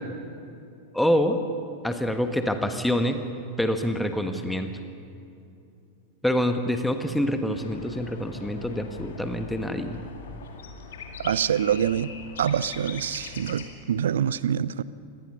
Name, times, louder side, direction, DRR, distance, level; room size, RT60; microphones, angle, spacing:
voice 1, 0.9-1.4 1.8-3.2 3.6-4.7 6.2-10.0, equal, 5° left, 7 dB, 1.3 m, -26 dB
sound 1, 7.5-13.7, left 5 dB, 60° left, 2.3 m, -41 dB
voice 2, 11.2-12.1 12.4-14.8, right 9 dB, 65° right, 19 dB, 0.5 m, -25 dB
26.0 x 19.0 x 5.5 m, 2.6 s
figure-of-eight pair, 90°, 0 cm